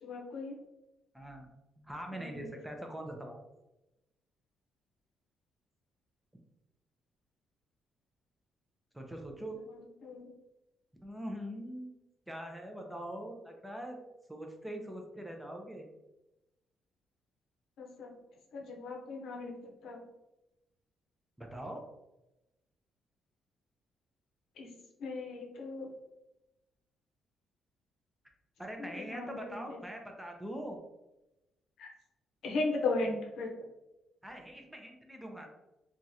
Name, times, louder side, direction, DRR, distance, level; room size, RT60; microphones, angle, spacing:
voice 1, 0.0-0.6 2.1-2.5 10.0-10.2 17.8-18.1 18.5-19.5 19.8-20.0 24.6-24.7 25.0-25.9 28.8-29.8 31.8-31.9 32.4-33.5, left 3 dB, 75° left, 1 dB, 0.6 m, -36 dB
voice 2, 1.1-1.5 1.8-3.4 8.9-9.6 11.0-12.0 12.3-14.0 14.3-15.9 21.4-21.8 28.6-30.8 34.2-35.5, right 1 dB, 5° right, 2 dB, 0.5 m, -42 dB
2.9 x 2.4 x 2.7 m, 0.95 s
cardioid pair, 90°, 0 cm